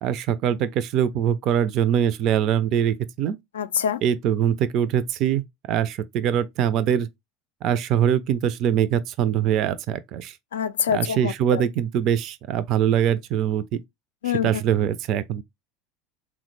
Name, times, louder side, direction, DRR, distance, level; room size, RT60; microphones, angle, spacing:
voice 1, 0.0-3.4 4.0-5.4 5.7-7.1 7.6-10.3 10.9-13.6 14.4-15.4, right 9 dB, 50° right, 0.3 m, -23 dB
voice 2, 3.5-4.0 10.5-11.6 14.2-14.5, left 8 dB, 85° left, 0.3 m, -25 dB
3.5 x 2.1 x 3.0 m
hypercardioid pair, 85°, 0 cm